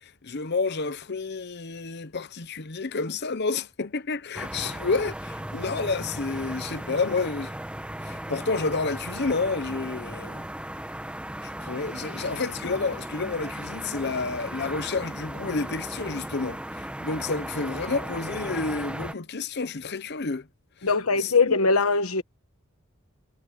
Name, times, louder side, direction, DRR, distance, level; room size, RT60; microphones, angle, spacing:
voice 1, 0.0-7.5 8.0-10.4 11.4-20.5 21.2-21.6, left 4 dB, 50° left, 0.9 m, -30 dB
sound 1, 4.3-19.1, right 1 dB, 5° right, 1.1 m, -36 dB
voice 2, 20.8-22.2, left 4 dB, 85° left, 1.3 m, -21 dB
head